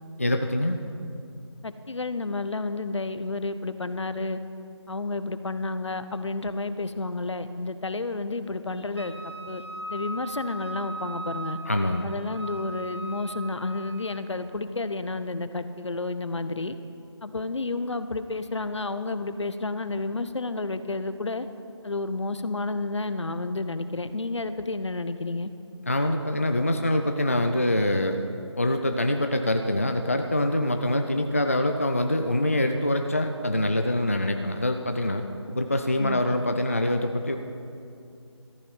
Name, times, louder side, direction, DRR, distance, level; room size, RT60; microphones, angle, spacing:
voice 1, 0.2-0.8 11.7-12.1 25.9-28.2 28.6-35.2 35.5-37.4, left 1 dB, 30° left, 5 dB, 0.4 m, -25 dB
voice 2, 1.6-4.4 4.9-9.6 9.9-11.6 12.0-16.7 17.2-21.5 21.8-25.5 36.0-36.2, left 3 dB, 75° left, 11 dB, 0.8 m, -31 dB
Wind instrument woodwind instrument, 9.0-14.3, right 2 dB, 60° right, 1.3 m, -39 dB
13.5 x 10.5 x 5.4 m, 2.6 s
figure-of-eight pair, 175°, 15 cm